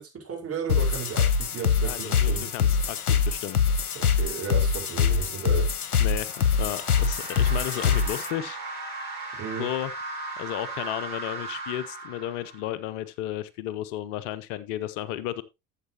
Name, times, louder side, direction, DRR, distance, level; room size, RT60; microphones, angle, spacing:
voice 1, 0.0-2.5 3.9-5.7 9.4-9.7, right 7 dB, 30° right, 4.5 m, -34 dB
sound 1, 0.7-8.3, left 6 dB, 80° left, 0.9 m, -24 dB
voice 2, 1.8-3.6 6.0-8.6 9.6-9.9 10.4-15.4, left 13 dB, 55° left, 0.8 m, -33 dB
sound 2, 5.8-12.8, right 3 dB, 80° right, 5.6 m, -37 dB
13.0 x 7.5 x 2.9 m
figure-of-eight pair, 70°, 44 cm